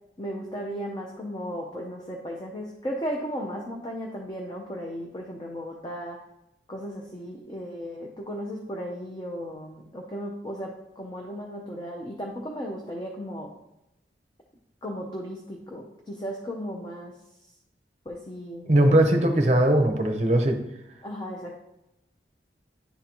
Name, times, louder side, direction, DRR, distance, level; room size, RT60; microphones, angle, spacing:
voice 1, 0.2-6.2 6.7-13.5 14.8-17.1 18.1-19.1 21.0-21.5, equal, 25° left, -1 dB, 0.6 m, -35 dB
voice 2, 18.7-20.6, right 1 dB, 40° right, 4 dB, 0.7 m, -20 dB
10.0 x 3.8 x 2.9 m, 0.87 s
head